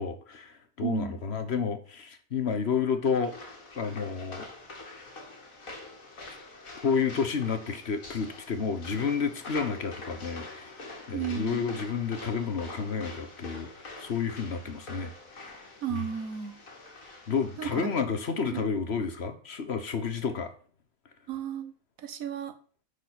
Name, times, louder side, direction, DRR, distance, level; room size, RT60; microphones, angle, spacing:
voice 1, 0.0-3.4 3.8-4.5 6.8-13.7 14.0-15.6 15.9-16.0 17.3-20.5, left 5 dB, 55° left, 1.3 m, -30 dB
voice 2, 0.8-1.1 11.1-11.6 15.8-16.6 17.6-17.7 18.5-18.7 21.3-21.7 22.0-22.5, right 9 dB, 90° right, 1.4 m, -33 dB
sound 1, 3.2-17.9, left 2 dB, 80° left, 2.5 m, -45 dB
10.0 x 4.8 x 6.1 m
omnidirectional pair, 1.4 m